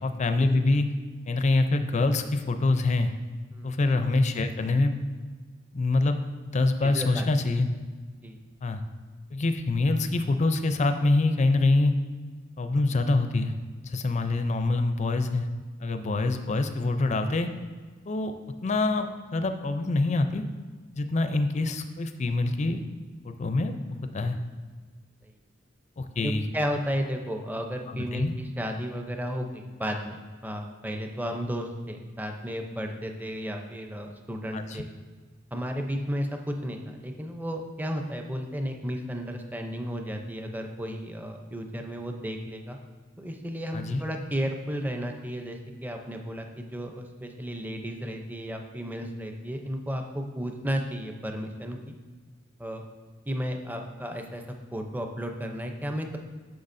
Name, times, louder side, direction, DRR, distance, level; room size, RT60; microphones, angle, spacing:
voice 1, 0.0-0.9 1.3-3.1 3.6-4.9 5.7-6.2 6.5-7.7 8.6-8.8 9.3-11.9 12.6-13.5 13.8-15.5 15.8-17.5 18.1-18.3 18.6-20.4 20.9-22.8 23.2-23.8 24.1-24.4 26.0-26.5 27.9-28.3 34.5-34.8 43.7-44.0, left 2 dB, 35° left, 8 dB, 0.4 m, -25 dB
voice 2, 6.8-7.2 8.2-8.4 25.2-25.3 26.2-34.9 35.5-42.8 43.2-52.0 52.6-52.8 53.3-56.2, equal, 10° right, 3 dB, 0.6 m, -33 dB
9.6 x 6.7 x 2.6 m, 1.4 s
head